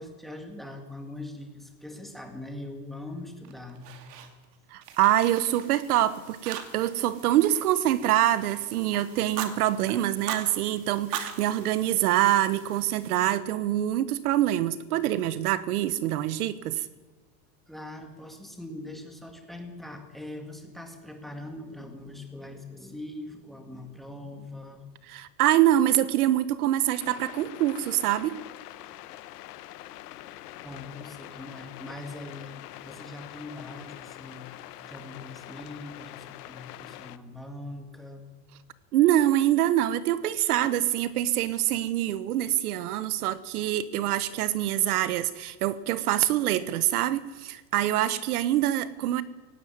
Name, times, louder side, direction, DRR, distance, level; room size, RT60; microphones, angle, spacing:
voice 1, 0.0-3.9 17.7-24.8 29.0-29.1 30.6-34.5 34.9-38.2, left 2 dB, ahead, 5 dB, 1.7 m, -42 dB
Fire, 3.4-4.5 4.8-6.0 6.4-7.0 7.3-8.7 9.1-9.5 10.1-10.5 11.0-12.5, right 9 dB, 85° right, 2.7 m, -38 dB
voice 2, 4.7-16.9 25.1-28.3 38.9-49.2, right 13 dB, 70° right, 16 dB, 1.2 m, -25 dB
sound 1, 4.8-13.3, right 7 dB, 50° right, 4.1 m, -53 dB
sound 2, 27.0-37.2, left 15 dB, 75° left, 1.2 m, -44 dB
17.5 x 16.5 x 9.4 m, 1.2 s
supercardioid pair, 175°, 47 cm